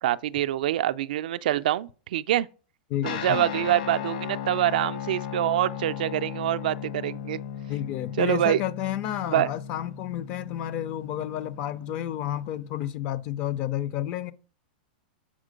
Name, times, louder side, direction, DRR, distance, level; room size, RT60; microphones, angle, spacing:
voice 1, 0.0-2.5 3.0-7.4 8.2-8.6 9.3-9.5, right 13 dB, 60° right, 0.3 m, -25 dB
voice 2, 2.9-3.7 7.7-14.3, left 12 dB, 30° left, 0.4 m, -31 dB
Guitar, 3.0-12.9, left 9 dB, 65° left, 1.1 m, -37 dB
7.3 x 4.4 x 5.0 m
supercardioid pair, 175°, 5 cm